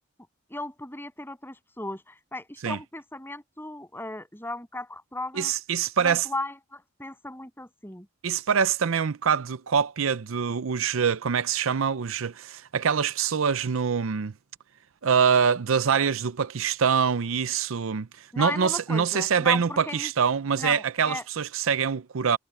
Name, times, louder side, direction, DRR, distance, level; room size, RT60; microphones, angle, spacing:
voice 1, 0.5-5.5 6.0-8.1 18.3-20.1 20.5-21.2, left 2 dB, 10° left, 7.5 m, -36 dB
voice 2, 5.3-6.2 8.2-14.3 15.0-18.1 18.4-22.4, right 6 dB, 70° right, 0.6 m, -24 dB
head